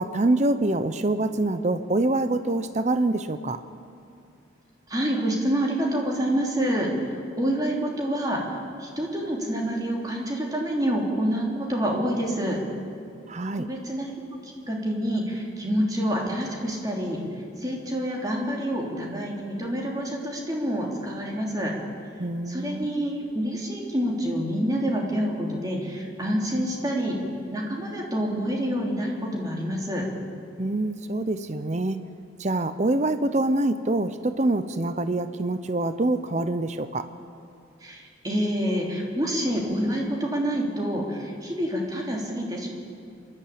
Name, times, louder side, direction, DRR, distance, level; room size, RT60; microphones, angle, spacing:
voice 1, 0.0-3.6 13.3-13.7 22.2-22.9 30.6-32.0 32.4-37.1, right 2 dB, 35° right, 11 dB, 0.7 m, -25 dB
voice 2, 4.9-8.4 8.8-12.6 13.5-14.4 14.7-17.2 17.6-21.7 22.5-27.2 27.5-30.0 37.8-42.7, equal, 20° right, -1 dB, 3.1 m, -27 dB
26.5 x 12.0 x 8.7 m, 2.5 s
head